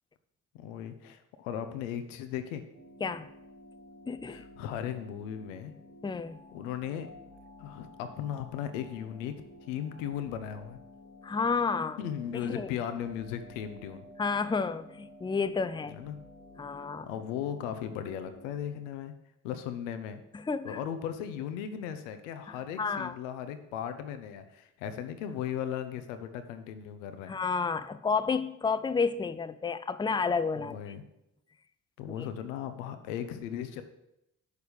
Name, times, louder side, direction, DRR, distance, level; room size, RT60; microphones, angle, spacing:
voice 1, 0.5-2.6 4.3-5.7 6.5-7.1 7.6-9.4 9.7-10.8 12.0-14.1 15.8-16.2 17.1-19.1 19.4-20.2 20.6-27.3 30.6-31.0 32.0-33.8, left 9 dB, 90° left, 0.7 m, -37 dB
sound 1, 2.7-18.6, left 1 dB, 85° right, 1.9 m, -52 dB
voice 2, 4.1-4.4 6.0-6.4 11.2-12.0 12.4-12.7 14.2-16.0 16.6-17.1 20.3-20.8 22.5-23.2 27.3-30.8 32.2-32.3, left 5 dB, 15° left, 0.5 m, -31 dB
6.8 x 6.5 x 5.1 m
hypercardioid pair, 45°, 36 cm